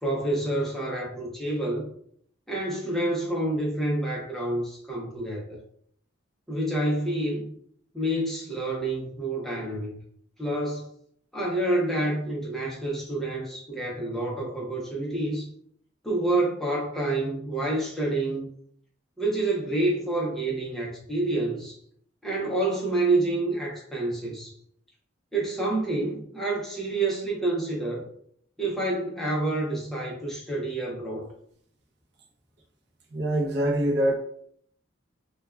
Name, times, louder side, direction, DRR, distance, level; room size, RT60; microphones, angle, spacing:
voice 1, 0.0-1.9 2.5-5.6 6.5-7.5 7.9-10.0 10.4-10.9 11.3-15.5 16.0-18.5 19.2-21.8 22.2-24.5 25.3-28.0 28.6-31.3, right 2 dB, ahead, 0.5 m, -28 dB
voice 2, 33.1-34.1, right 1 dB, 55° right, 0.5 m, -24 dB
3.2 x 2.2 x 2.2 m
head